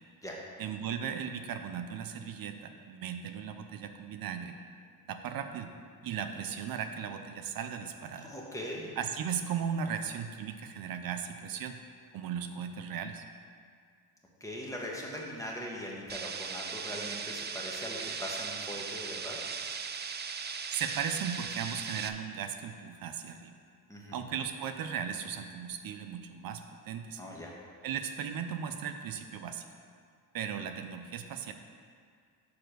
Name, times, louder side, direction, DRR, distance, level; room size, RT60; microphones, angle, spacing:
voice 1, 0.6-4.6 5.1-5.7 6.0-8.3 9.0-11.8 12.1-13.2 20.7-23.5 24.1-27.2 27.8-29.7 30.3-31.5, right 7 dB, 75° right, 7 dB, 0.6 m, -37 dB
voice 2, 8.2-8.9 14.4-19.4 23.9-24.2 27.2-27.5, equal, 10° left, -3 dB, 1.3 m, -40 dB
sound 1, 16.1-22.1, right 6 dB, 30° right, 0.4 m, -38 dB
6.8 x 4.3 x 6.5 m, 2.2 s
cardioid pair, 110°, 35 cm